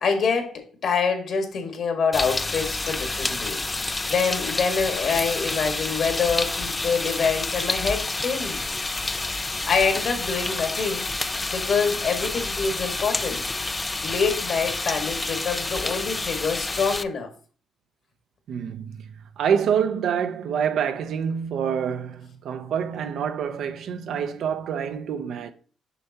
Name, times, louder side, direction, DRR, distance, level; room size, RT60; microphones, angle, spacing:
voice 1, 0.0-3.6 3.9-8.6 9.1-9.3 9.7-11.1 11.5-13.4 14.0-17.3, left 5 dB, 60° left, 1.8 m, -26 dB
sound 1, 2.1-17.0, left 2 dB, 20° left, 0.4 m, -29 dB
voice 2, 18.5-19.1 19.4-25.5, right 7 dB, 70° right, 0.7 m, -26 dB
6.8 x 5.5 x 2.9 m
cardioid pair, 90°, 0 cm